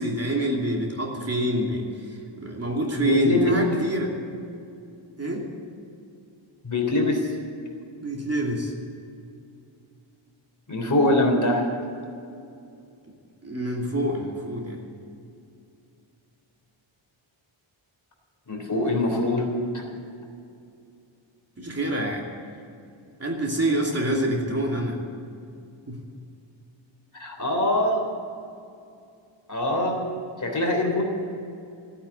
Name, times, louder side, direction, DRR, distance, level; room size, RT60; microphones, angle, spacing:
voice 1, 0.0-4.1 5.2-5.5 8.0-8.7 13.4-14.8 21.6-22.2 23.2-25.0 25.9-26.0, right 1 dB, 30° right, -1 dB, 2.8 m, -26 dB
voice 2, 3.0-3.5 6.6-7.2 10.7-11.6 18.5-19.8 27.2-28.0 29.5-30.0 30.4-31.0, left 1 dB, 35° left, 1 dB, 3.4 m, -23 dB
16.5 x 9.9 x 8.7 m, 2.5 s
wide cardioid pair, 130°, 50 cm